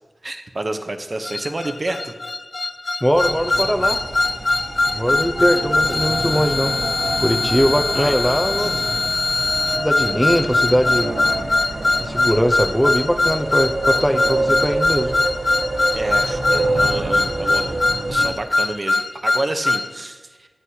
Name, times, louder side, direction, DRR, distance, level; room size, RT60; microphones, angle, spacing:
voice 1, 0.2-2.2 6.2-6.3 7.9-8.7 10.4-10.5 15.9-17.8 18.1-20.5, right 2 dB, 45° right, 6 dB, 0.8 m, -29 dB
sound 1, 1.3-19.9, left 3 dB, 60° left, 0.6 m, -22 dB
voice 2, 3.0-4.0 4.9-6.8 7.2-8.9 9.8-11.1 12.0-15.1, equal, ahead, 6 dB, 0.6 m, -20 dB
sound 2, 3.1-18.3, right 2 dB, 70° right, 1.4 m, -27 dB
15.0 x 8.0 x 2.8 m, 1.4 s
wide cardioid pair, 60°, 0 cm